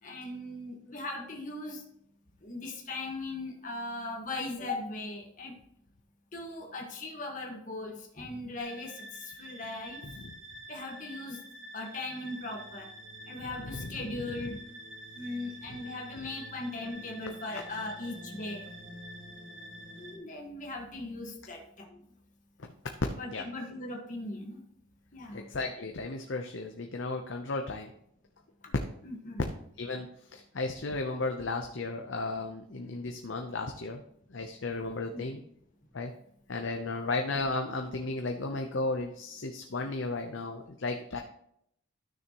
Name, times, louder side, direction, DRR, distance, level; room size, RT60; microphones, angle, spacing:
voice 1, 0.0-1.8 2.4-5.6 6.3-10.0 10.7-11.4 11.7-12.9 13.3-14.6 15.1-18.7 20.0-22.0 23.2-24.6 25.1-25.5 29.0-29.4 35.1-35.2, left 2 dB, 40° left, 1 dB, 1.5 m, -39 dB
sound 1, 8.6-20.2, equal, 70° right, 2.0 m, -47 dB
voice 2, 10.0-10.3 13.6-14.6 16.2-16.3 17.5-17.6 22.6-22.7 23.3-23.4 25.3-27.9 29.4-29.5 29.8-34.0 34.3-35.4 35.9-36.1 36.5-41.2, left 3 dB, 70° left, 4 dB, 0.7 m, -35 dB
12.0 x 6.5 x 3.0 m, 0.71 s
head